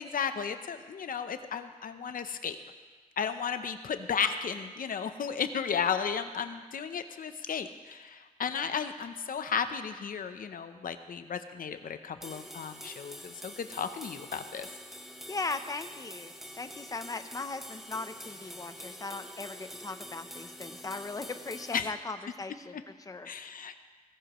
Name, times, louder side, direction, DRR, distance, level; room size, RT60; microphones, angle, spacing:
voice 1, 0.0-2.6 3.2-14.7 21.7-21.9 23.3-23.8, left 7 dB, 75° left, 9 dB, 0.7 m, -34 dB
sound 1, 12.2-21.8, equal, ahead, 1.2 m, -46 dB
voice 2, 15.3-23.3, left 3 dB, 25° left, 9 dB, 0.7 m, -38 dB
19.0 x 16.0 x 3.1 m, 1.4 s
wide cardioid pair, 100°, 15 cm